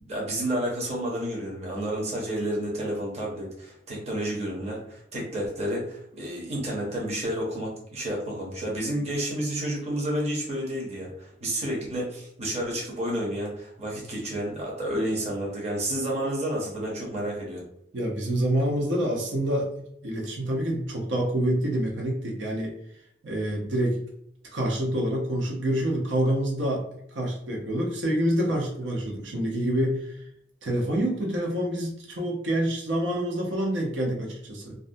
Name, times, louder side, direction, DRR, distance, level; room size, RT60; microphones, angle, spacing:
voice 1, 0.1-17.7, right 1 dB, 35° right, -3 dB, 0.7 m, -30 dB
voice 2, 17.9-19.7 20.0-22.7 23.2-24.0 24.5-26.8 27.1-30.2 30.6-34.8, right 1 dB, 85° right, -1 dB, 0.7 m, -27 dB
2.4 x 2.1 x 2.6 m, 0.72 s
head